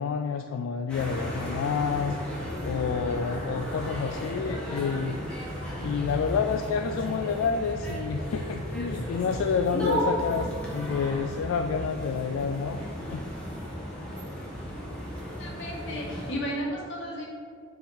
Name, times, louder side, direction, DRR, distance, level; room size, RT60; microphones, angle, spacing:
voice 1, 0.0-2.2 2.6-5.2 5.8-12.8 13.1-13.2, left 6 dB, 90° left, 6 dB, 0.3 m, -29 dB
sound 1, 0.9-16.3, equal, 5° left, 1.2 m, -34 dB
voice 2, 15.4-17.3, equal, 65° left, -4 dB, 1.6 m, -34 dB
7.0 x 3.7 x 4.5 m, 2.2 s
head